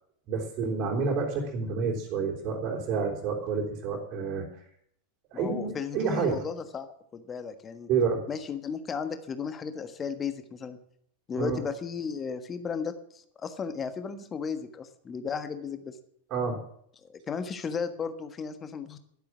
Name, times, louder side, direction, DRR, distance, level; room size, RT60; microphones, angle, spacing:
voice 1, 0.3-4.5 5.3-6.4 7.9-8.2 11.4-11.6 16.3-16.6, right 5 dB, 35° right, -2 dB, 3.7 m, -29 dB
voice 2, 5.3-6.9 7.1-7.9 8.3-10.8 11.3-16.0 17.0-19.0, left 6 dB, 20° left, 10 dB, 1.4 m, -35 dB
12.0 x 11.5 x 7.3 m, 0.68 s
figure-of-eight pair, 90°, 0 cm